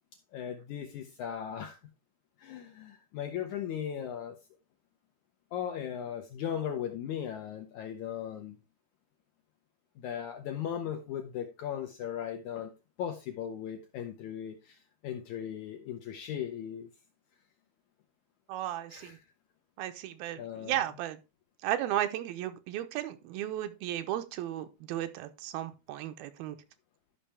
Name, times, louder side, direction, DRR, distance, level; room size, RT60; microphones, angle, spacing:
voice 1, 0.3-1.8 2.4-4.4 5.5-8.6 10.0-12.7 13.0-16.9 18.9-19.2 20.4-20.8, left 9 dB, 75° left, 1.8 m, -37 dB
voice 2, 18.5-19.2 19.8-21.2 21.6-26.6, right 12 dB, 80° right, 2.6 m, -34 dB
12.5 x 5.7 x 3.4 m
omnidirectional pair, 4.4 m